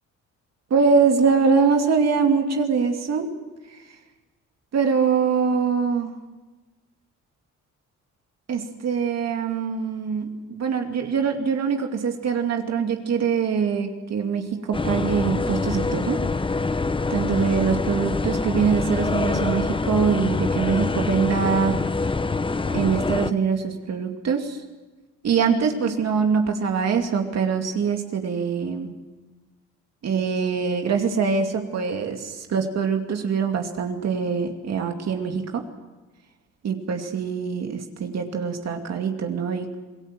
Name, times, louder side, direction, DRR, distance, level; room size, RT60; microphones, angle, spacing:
voice 1, 0.7-3.3 4.7-6.2 8.5-16.3 17.1-21.8 22.7-24.6 25.2-28.9 30.0-35.6 36.6-39.7, right 6 dB, 60° right, 4 dB, 2.5 m, -23 dB
sound 1, 14.7-23.3, left 3 dB, 15° left, 0.8 m, -25 dB
27.0 x 18.5 x 7.6 m, 1.2 s
cardioid pair, 90°, 30 cm